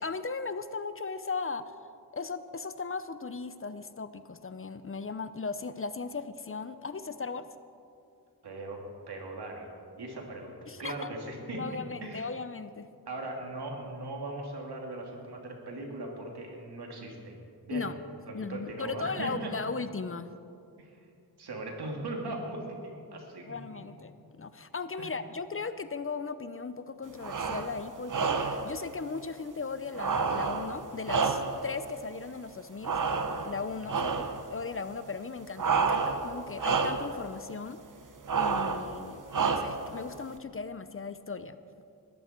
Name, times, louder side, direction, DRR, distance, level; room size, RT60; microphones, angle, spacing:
voice 1, 0.0-1.8 2.1-7.4 10.7-11.1 11.6-12.9 17.7-17.9 18.3-20.3 23.5-24.1 24.4-32.9 33.4-37.8 38.3-41.6, left 4 dB, 35° left, 12 dB, 0.6 m, -37 dB
voice 2, 8.4-9.7 10.0-12.3 13.1-17.9 18.3-19.5 20.8-21.0 21.4-23.6 25.0-25.1, right 2 dB, 80° right, 0 dB, 2.9 m, -39 dB
sound 1, 27.2-27.7 28.1-28.7 30.0-31.7 32.8-33.6 33.9-34.4 35.6-36.3 36.6-37.1 38.3-38.9 39.3-39.9, right 5 dB, 55° right, 1.1 m, -29 dB
20.5 x 14.0 x 4.5 m, 2.5 s
wide cardioid pair, 100°, 39 cm